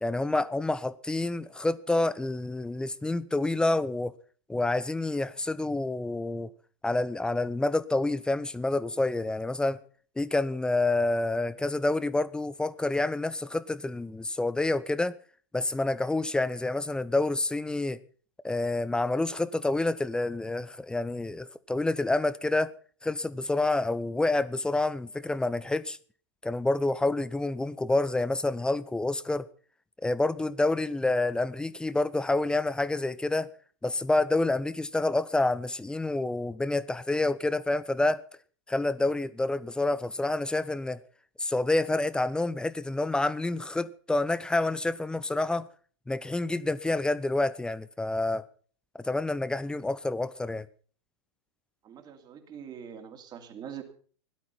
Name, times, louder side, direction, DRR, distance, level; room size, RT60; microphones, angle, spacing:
voice 1, 0.0-4.1 4.5-6.5 6.8-9.8 10.2-15.2 15.5-18.0 18.4-22.7 23.0-26.0 26.4-29.5 30.0-33.5 33.8-38.2 38.7-41.0 41.4-45.7 46.1-48.5 49.0-50.7, left 2 dB, 5° left, 0.7 m, -28 dB
voice 2, 51.8-53.8, right 8 dB, 25° right, 2.8 m, -43 dB
17.0 x 12.0 x 5.9 m
figure-of-eight pair, 105°, 16 cm